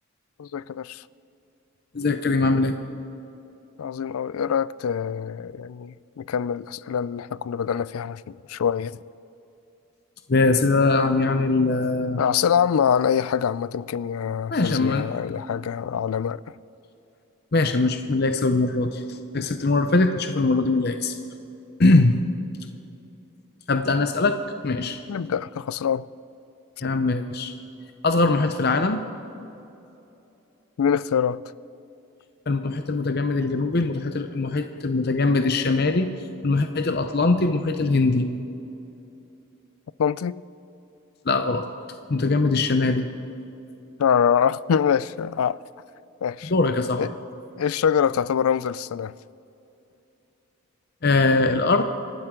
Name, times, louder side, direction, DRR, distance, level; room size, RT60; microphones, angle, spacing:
voice 1, 0.4-1.0 3.8-9.0 12.2-16.4 25.1-26.1 30.8-31.4 40.0-40.4 44.0-45.6 46.2-46.5 47.0-47.1 47.6-49.1, left 7 dB, 85° left, 0.4 m, -24 dB
voice 2, 1.9-2.7 10.3-12.2 14.5-15.1 17.5-19.0 19.3-21.1 21.8-22.1 23.7-24.3 24.6-25.0 26.8-27.5 28.0-29.0 32.5-36.1 36.4-38.3 41.3-41.7 42.1-43.1 46.5-47.1 51.0-51.8, left 3 dB, 45° left, 0.7 m, -21 dB
28.5 x 12.0 x 3.8 m
head